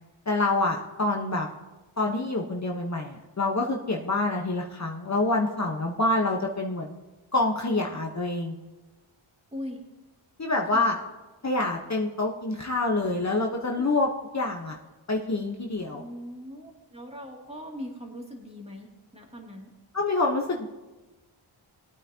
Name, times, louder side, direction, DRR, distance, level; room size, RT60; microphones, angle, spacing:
voice 1, 0.3-1.5 2.0-6.9 7.3-8.5 10.4-11.0 11.4-14.1 14.3-14.8 15.1-16.0 19.9-20.7, left 2 dB, 35° left, 0 dB, 1.1 m, -26 dB
voice 2, 9.5-9.8 10.7-10.9 13.8-13.9 15.9-19.7, equal, 10° right, -1 dB, 2.4 m, -40 dB
20.0 x 9.0 x 2.9 m, 1.2 s
cardioid pair, 70°, 48 cm